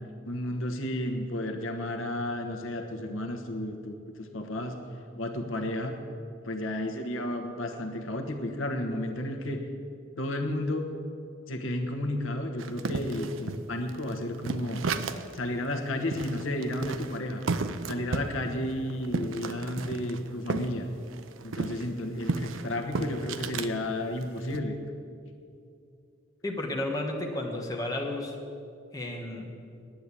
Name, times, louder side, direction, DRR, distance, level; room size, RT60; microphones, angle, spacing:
voice 1, 0.2-4.8 5.2-5.9 6.4-9.6 10.2-10.9 11.5-14.8 15.3-17.4 17.8-20.9 21.4-24.8, left 1 dB, 85° left, 4 dB, 1.2 m, -32 dB
sound 1, 12.6-15.4 15.7-15.8 16.1-20.7 21.0-23.7 24.2-24.6, right 3 dB, 80° right, 0.6 m, -33 dB
voice 2, 26.4-28.3 28.9-29.5, left 1 dB, 20° left, 0 dB, 1.3 m, -32 dB
10.5 x 9.0 x 8.4 m, 2.5 s
head